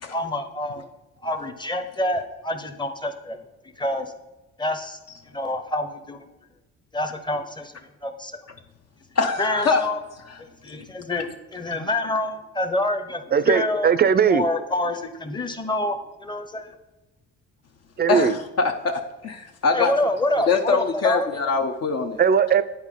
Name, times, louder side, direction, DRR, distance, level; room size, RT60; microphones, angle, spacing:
voice 1, 0.1-0.9 1.2-3.4 3.8-4.1 4.6-5.0 5.3-6.2 6.9-7.7 8.0-8.4 9.4-10.0 10.4-13.9 14.3-16.7 19.7-21.3, left 1 dB, 15° left, 0.8 m, -27 dB
voice 2, 9.2-9.9 18.1-19.9 20.5-22.2, left 4 dB, 55° left, 0.8 m, -23 dB
voice 3, 13.3-14.4 18.0-18.4 22.2-22.6, right 7 dB, 30° right, 0.4 m, -19 dB
9.5 x 4.5 x 3.7 m
cardioid pair, 90°, 31 cm